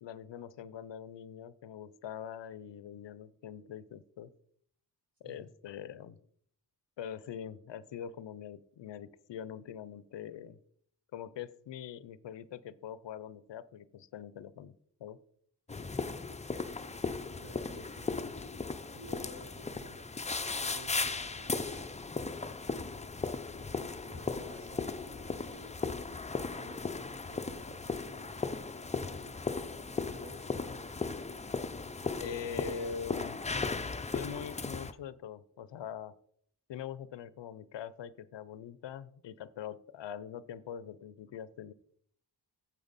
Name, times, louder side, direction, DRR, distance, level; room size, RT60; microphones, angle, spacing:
voice 1, 0.0-4.3 5.2-6.2 7.0-10.6 11.1-14.7 15.0-15.2 32.2-33.4 34.1-36.2 36.7-41.7, left 8 dB, 85° left, 17 dB, 0.6 m, -43 dB
sound 1, 15.7-34.9, left 4 dB, 15° left, 0.5 m, -37 dB
voice 2, 17.3-18.3 18.9-20.1 20.6-21.9 22.2-22.7 23.5-26.0 26.5-28.4 29.0-30.8, right 1 dB, 55° right, -3 dB, 3.4 m, -54 dB
8.7 x 7.7 x 4.0 m, 0.63 s
wide cardioid pair, 105°, 42 cm